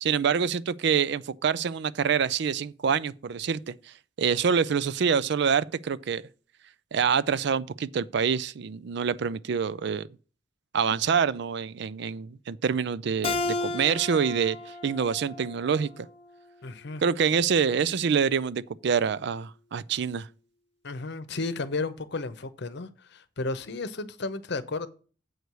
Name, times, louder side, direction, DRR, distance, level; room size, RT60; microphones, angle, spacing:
voice 1, 0.0-3.7 4.2-6.2 6.9-10.1 10.7-16.1 17.0-20.3, right 6 dB, 60° right, 0.4 m, -26 dB
Keyboard (musical), 13.2-16.5, left 3 dB, 30° left, 0.6 m, -34 dB
voice 2, 16.6-17.0 20.8-24.9, left 3 dB, 60° left, 0.8 m, -33 dB
7.9 x 4.7 x 6.7 m
head